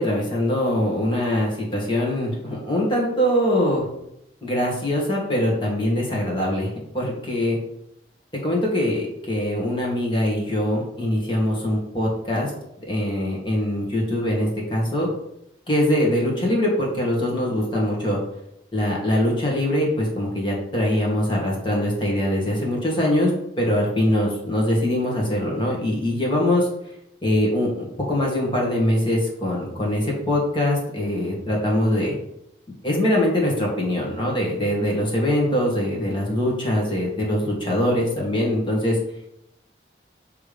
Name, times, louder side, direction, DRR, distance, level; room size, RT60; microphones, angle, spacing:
voice 1, 0.0-3.9 4.4-6.7 6.9-7.6 8.4-12.5 12.9-15.1 15.7-18.2 18.7-26.7 27.2-32.2 32.8-39.0, left 1 dB, 25° left, -3 dB, 1.7 m, -23 dB
8.2 x 3.4 x 3.4 m, 0.79 s
head